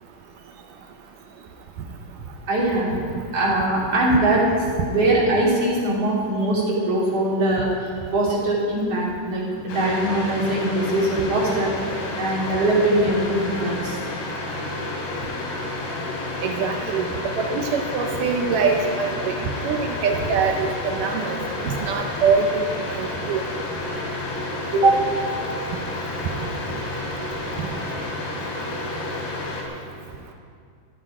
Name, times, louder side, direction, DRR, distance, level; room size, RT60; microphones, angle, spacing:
voice 1, 2.5-2.9 3.3-4.4 4.9-7.7 8.1-11.7 12.2-14.0 24.7-25.0, right 1 dB, 40° right, -5 dB, 3.8 m, -21 dB
sound 1, 9.7-29.6, left 2 dB, 75° left, 4.3 m, -30 dB
voice 2, 16.4-17.0 17.4-21.4 21.6-22.7 22.9-23.4, right 5 dB, 75° right, 4 dB, 2.0 m, -24 dB
15.5 x 14.0 x 4.9 m, 2.2 s
omnidirectional pair, 4.7 m